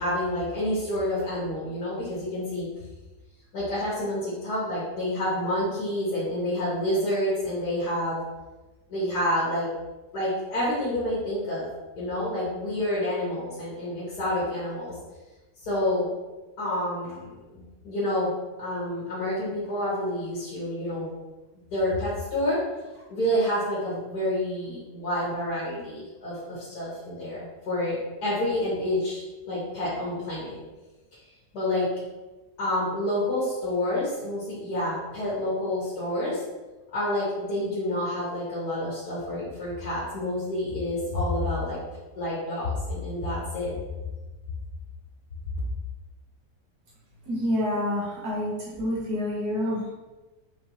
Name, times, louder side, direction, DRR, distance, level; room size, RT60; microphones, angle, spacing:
voice 1, 0.0-2.7 3.5-8.2 8.9-9.7 10.1-11.7 12.0-15.0 15.6-16.1 16.6-18.3 18.6-21.1 21.7-22.6 23.1-30.6 31.5-31.9 32.6-36.4 36.9-41.8 42.2-43.8, left 1 dB, 80° left, -9 dB, 1.9 m, -28 dB
voice 2, 47.3-49.9, left 1 dB, 70° right, -6 dB, 1.6 m, -28 dB
4.9 x 3.6 x 2.8 m, 1.1 s
omnidirectional pair, 1.7 m